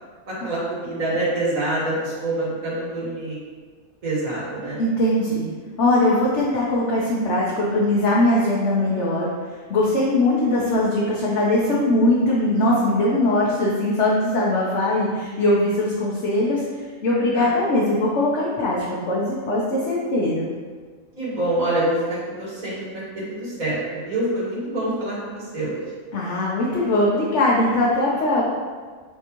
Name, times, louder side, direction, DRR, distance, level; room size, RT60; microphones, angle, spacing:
voice 1, 0.3-3.4 4.0-4.8 17.3-17.5 17.7-17.8 21.2-25.8, right 1 dB, 80° right, -7 dB, 2.4 m, -26 dB
voice 2, 4.8-5.5 5.8-9.3 9.7-16.6 17.0-18.8 19.1-20.5 26.1-28.4, left 1 dB, 60° left, -5 dB, 1.1 m, -20 dB
8.1 x 3.8 x 3.0 m, 1.5 s
omnidirectional pair, 1.4 m